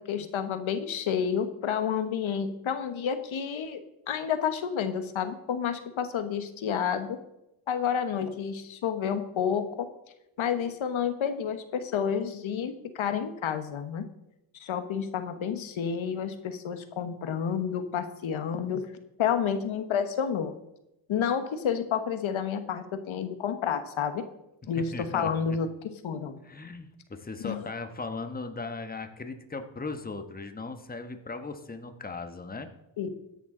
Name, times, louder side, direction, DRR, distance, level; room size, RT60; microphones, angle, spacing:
voice 1, 0.0-3.8 4.1-7.2 7.7-9.9 10.4-14.1 14.6-18.9 19.2-20.5 21.1-24.2 24.7-25.7 26.0-26.4 27.4-27.7 33.0-33.1, left 7 dB, 85° left, 9 dB, 1.2 m, -30 dB
voice 2, 24.7-25.6 26.4-32.7, left 3 dB, 20° left, 7 dB, 1.2 m, -38 dB
14.0 x 11.0 x 3.8 m, 0.87 s
wide cardioid pair, 110°, 47 cm